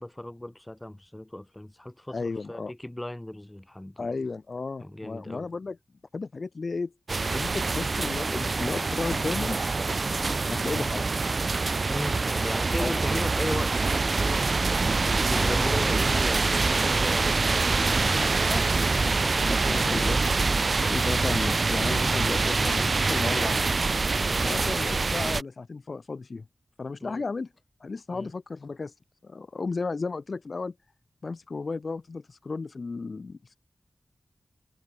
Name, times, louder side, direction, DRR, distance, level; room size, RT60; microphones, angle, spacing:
voice 1, 0.0-4.1 4.8-5.5 11.9-14.5 15.1-18.2 24.3-24.6 27.0-27.2 28.1-28.3, left 1 dB, 15° left, 7.8 m, -37 dB
voice 2, 2.1-2.7 4.0-5.8 6.1-6.9 7.3-9.6 10.5-11.0 12.8-13.0 15.3-15.8 18.0-20.3 20.8-23.6 24.4-26.4 26.8-27.5 27.8-28.9 29.2-30.7 31.2-33.4, left 4 dB, 60° left, 5.1 m, -34 dB
sound 1, 7.1-25.4, right 3 dB, 55° right, 1.1 m, -25 dB
wide cardioid pair, 75°, 0 cm